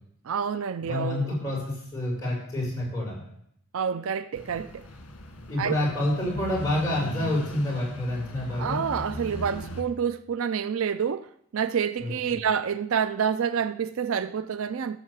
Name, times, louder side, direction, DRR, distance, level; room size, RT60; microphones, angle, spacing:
voice 1, 0.2-1.3 3.7-4.9 5.6-5.8 8.6-15.0, right 7 dB, 65° right, 0.4 m, -28 dB
voice 2, 0.8-3.2 5.5-8.8 12.0-12.1, left 1 dB, 15° left, 6.3 m, -28 dB
sound 1, 4.4-9.8, left 1 dB, 75° left, 1.6 m, -39 dB
16.0 x 5.5 x 7.3 m
head